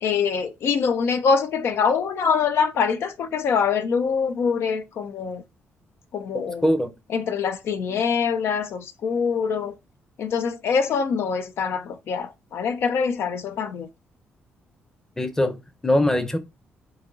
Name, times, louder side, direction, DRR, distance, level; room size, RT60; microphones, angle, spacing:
voice 1, 0.0-5.4 6.1-6.6 7.1-9.7 10.2-13.9, left 6 dB, 70° left, 0.5 m, -24 dB
voice 2, 6.3-6.9 15.2-16.4, left 1 dB, 10° left, 0.7 m, -22 dB
4.0 x 2.9 x 3.7 m
cardioid pair, 105°, 4 cm